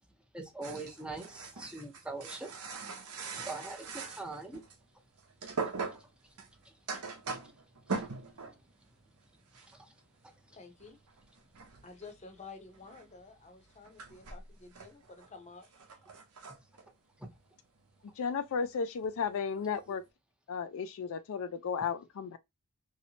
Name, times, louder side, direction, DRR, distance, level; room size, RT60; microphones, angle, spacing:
voice 1, 0.3-2.5 3.3-4.6 5.9-6.1 6.6-6.7 8.0-8.1 9.7-9.9 10.2-10.3 16.5-16.6 17.2-17.3, right 2 dB, 5° right, 0.6 m, -43 dB
sound 1, 0.6-4.8 5.1-8.7 9.0-9.3 9.5-9.9 10.2-18.1 18.4-18.8 19.1-20.0, right 4 dB, 80° right, 0.8 m, -43 dB
voice 2, 10.5-11.0 11.8-15.7 19.9-20.0, left 4 dB, 30° left, 0.7 m, -51 dB
voice 3, 18.2-20.0 20.5-22.4, left 6 dB, 65° left, 0.4 m, -34 dB
3.1 x 2.8 x 2.8 m
head